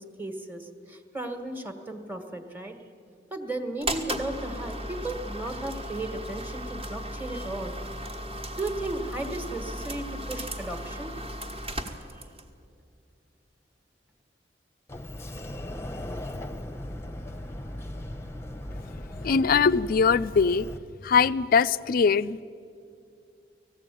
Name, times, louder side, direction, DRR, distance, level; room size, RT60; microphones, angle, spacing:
voice 1, 0.0-2.7 3.3-7.8 8.6-11.1, right 2 dB, 10° right, 6 dB, 1.4 m, -35 dB
sound 1, 3.8-12.5, right 1 dB, 35° right, 1.4 m, -36 dB
Sliding door, 14.9-20.8, left 1 dB, 15° left, 0.9 m, -38 dB
voice 2, 19.1-20.7 21.0-22.4, left 5 dB, 55° left, 15 dB, 0.4 m, -22 dB
19.5 x 15.0 x 9.1 m, 2.6 s
head